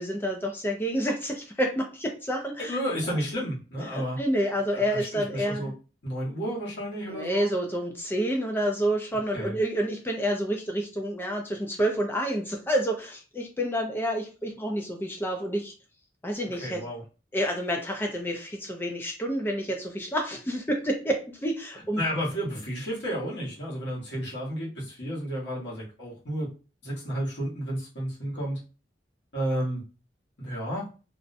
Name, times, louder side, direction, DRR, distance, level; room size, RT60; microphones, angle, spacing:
voice 1, 0.0-3.2 3.8-5.7 7.1-15.7 16.2-16.8 17.3-22.1, equal, 10° left, 2 dB, 0.3 m, -29 dB
voice 2, 2.6-4.2 4.7-5.7 6.0-7.5 9.3-9.6 16.4-17.0 22.0-26.5 26.8-28.6 29.3-29.8 30.4-30.9, equal, 70° left, -6 dB, 1.1 m, -32 dB
2.4 x 2.1 x 2.5 m, 0.34 s
head